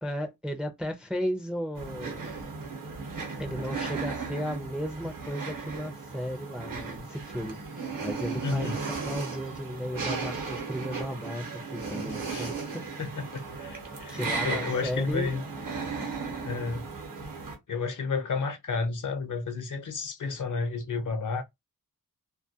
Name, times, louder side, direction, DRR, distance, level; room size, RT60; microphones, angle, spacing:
voice 1, 0.0-2.3 3.4-7.6 8.0-12.8 14.1-15.3, equal, 5° right, 0.4 m, -35 dB
sound 1, 1.7-17.6, right 4 dB, 60° right, 0.8 m, -36 dB
voice 2, 8.4-8.7 12.3-12.5 13.0-15.4 16.4-16.9 17.7-21.4, left 4 dB, 55° left, 0.6 m, -31 dB
2.3 x 2.1 x 2.7 m
wide cardioid pair, 100°, 36 cm